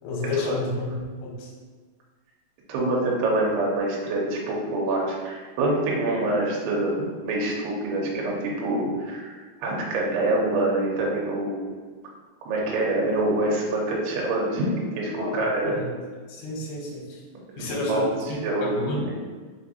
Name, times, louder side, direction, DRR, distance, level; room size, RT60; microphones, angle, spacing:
voice 1, 0.0-1.5 15.2-15.4 15.6-15.9 16.3-17.2 17.6-19.0, left 2 dB, 80° left, -3 dB, 2.8 m, -31 dB
voice 2, 2.7-11.7 12.5-15.8 17.6-18.0 18.4-18.9, right 2 dB, 80° right, -3 dB, 2.8 m, -26 dB
6.1 x 2.6 x 2.6 m, 1.5 s
omnidirectional pair, 4.7 m